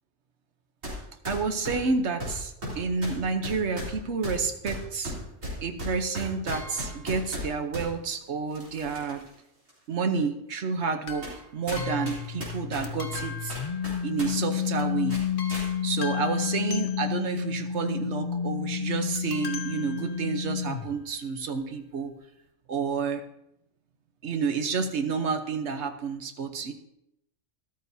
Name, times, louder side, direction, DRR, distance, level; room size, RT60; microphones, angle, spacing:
sound 1, 0.8-1.0 1.2-7.9 8.5-9.3 9.7-9.8 10.5-10.6 11.2-11.4 11.7-14.3 14.5-14.7 15.1-15.7, equal, 90° right, 3.7 m, -36 dB
voice 1, 1.3-5.1 5.6-9.2 9.9-11.3 11.5-13.6 14.0-15.2 15.8-22.1 22.7-23.2 24.2-26.7, right 5 dB, 65° right, 7 dB, 1.2 m, -29 dB
sound 2, 6.5-7.2 11.0-12.6 12.8-14.3 14.8-15.0 15.4-17.4 19.1-20.6 21.3-21.4 21.6-21.7, left 5 dB, 75° left, 1.3 m, -42 dB
sound 3, 11.7-21.0, left 8 dB, 50° left, 0.4 m, -31 dB
13.5 x 12.0 x 2.7 m, 0.83 s
omnidirectional pair, 1.3 m